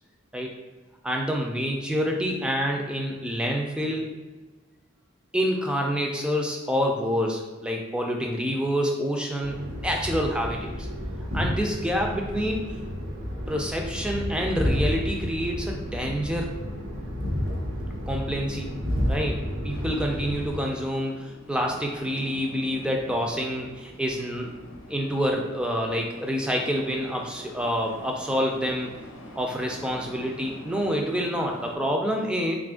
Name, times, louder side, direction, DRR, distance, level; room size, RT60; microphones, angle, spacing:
voice 1, 1.0-4.1 5.3-10.9 11.3-12.7 13.5-16.5 18.1-18.7 19.1-24.5 24.9-28.9 29.4-32.6, equal, 5° right, 0 dB, 0.3 m, -27 dB
sound 1, 9.4-20.6, equal, 90° right, 0.9 m, -31 dB
sound 2, 19.7-31.8, left 1 dB, 60° left, 0.7 m, -45 dB
3.6 x 2.5 x 3.5 m, 1.3 s
head